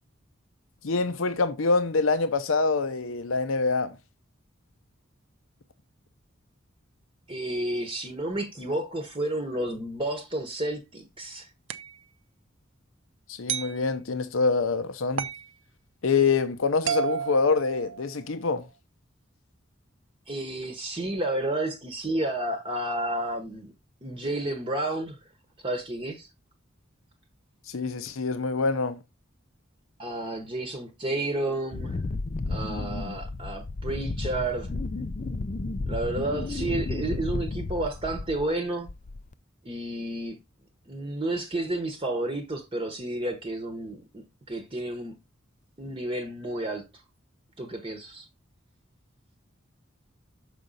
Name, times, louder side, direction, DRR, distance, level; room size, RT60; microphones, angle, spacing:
voice 1, 0.8-4.0 13.3-15.3 16.0-18.7 27.7-29.0, left 4 dB, 80° left, 0.7 m, -25 dB
voice 2, 7.3-11.5 20.3-23.7 24.0-25.2 25.6-26.3 30.0-32.0 32.5-34.7 35.9-38.9 39.6-40.4 40.9-45.1 45.8-46.9 47.6-48.3, right 1 dB, 25° right, 1.0 m, -31 dB
sound 1, 11.7-12.0 13.5-13.8 15.2-15.5 16.9-18.3, right 8 dB, 65° right, 0.6 m, -31 dB
Wind, 31.7-38.5 38.9-39.3, left 3 dB, 35° left, 0.4 m, -32 dB
6.6 x 5.0 x 4.0 m
head